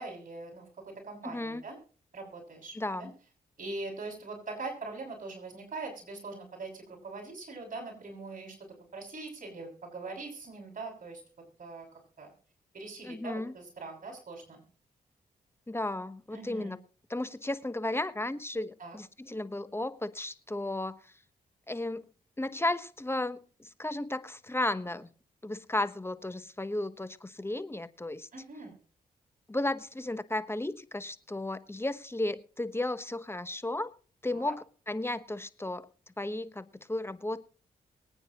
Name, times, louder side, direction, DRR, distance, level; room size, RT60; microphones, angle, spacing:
voice 1, 0.0-1.8 2.1-3.1 3.6-11.2 11.6-11.9 12.2-12.3 12.7-14.6 16.3-16.8 18.8-19.0 28.3-28.8 34.3-34.5, right 3 dB, 55° right, 1 dB, 6.3 m, -42 dB
voice 2, 1.2-1.6 2.8-3.1 13.0-13.5 15.7-16.8 17.1-21.1 21.7-22.1 22.4-25.1 25.4-28.3 29.5-33.9 34.2-35.9 36.2-37.4, left 2 dB, 15° left, 13 dB, 1.0 m, -34 dB
23.0 x 9.3 x 3.0 m, 0.39 s
supercardioid pair, 50°, 16 cm